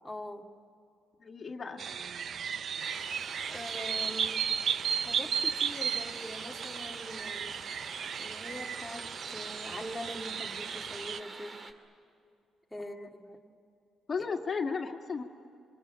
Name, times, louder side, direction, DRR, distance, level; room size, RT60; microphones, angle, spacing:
voice 1, 0.0-0.4 3.5-4.5 4.9-7.6 8.2-11.6 12.7-13.4 14.2-14.3, equal, 5° left, 0 dB, 2.0 m, -43 dB
voice 2, 1.2-1.8 12.8-13.1 14.1-15.2, left 5 dB, 45° left, 3 dB, 1.9 m, -35 dB
sound 1, 1.8-11.2, right 7 dB, 55° right, 0.6 m, -34 dB
Lluvia audio original, 2.8-11.7, right 3 dB, 40° right, 2.4 m, -47 dB
27.0 x 24.0 x 8.9 m, 2.5 s
cardioid pair, 90°, 0 cm